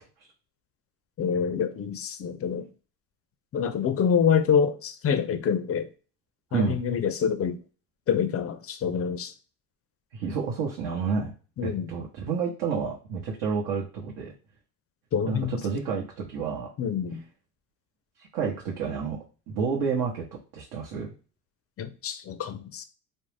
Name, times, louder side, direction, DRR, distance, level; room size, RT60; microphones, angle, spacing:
voice 1, 1.2-2.7 3.5-5.9 6.5-7.6 8.1-9.3 11.6-11.9 15.1-15.6 16.8-17.2 21.8-22.8, left 7 dB, 35° left, 0.4 m, -26 dB
voice 2, 10.1-11.3 11.6-14.3 15.3-16.7 18.2-20.2 20.5-21.1, right 5 dB, 60° right, 0.9 m, -29 dB
2.6 x 2.1 x 3.2 m
supercardioid pair, 80°, 43 cm